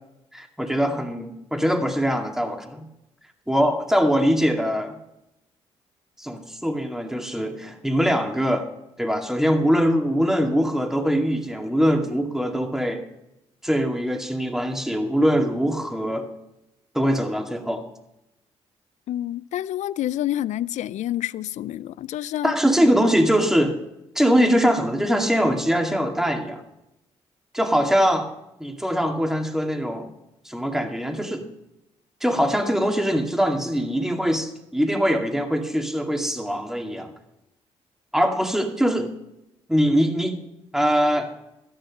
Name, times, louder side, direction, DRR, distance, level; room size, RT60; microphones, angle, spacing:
voice 1, 0.3-2.9 3.5-5.0 6.2-8.7 9.0-13.0 13.6-16.3 16.9-17.8 22.4-23.8 24.2-26.6 27.5-28.3 28.6-30.1 30.4-31.4 32.2-37.1 38.1-39.1 39.7-40.4 40.7-41.3, equal, 5° right, 2.2 m, -22 dB
voice 2, 19.1-22.5, left 13 dB, 70° left, 0.4 m, -28 dB
13.0 x 10.5 x 5.4 m
supercardioid pair, 50°, 13 cm